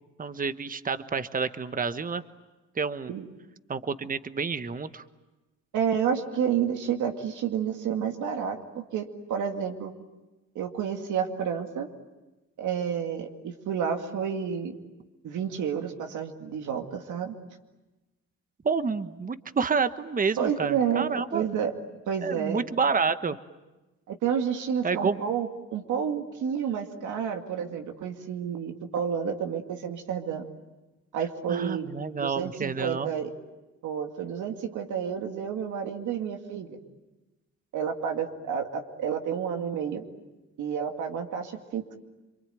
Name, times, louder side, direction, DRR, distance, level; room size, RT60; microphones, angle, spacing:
voice 1, 0.2-2.2 2.8-3.1 3.7-5.0 18.6-21.4 22.2-23.4 24.8-25.2 31.5-33.1, right 5 dB, 30° right, 12 dB, 1.1 m, -29 dB
voice 2, 5.7-9.9 10.6-11.9 12.6-14.7 15.2-17.4 20.4-21.7 22.1-22.6 24.1-30.5 31.1-31.9 32.2-33.3 33.8-36.8 37.7-40.0 40.6-42.0, right 7 dB, 80° right, 4 dB, 2.3 m, -30 dB
27.0 x 24.0 x 9.2 m, 1.1 s
cardioid pair, 90°, 30 cm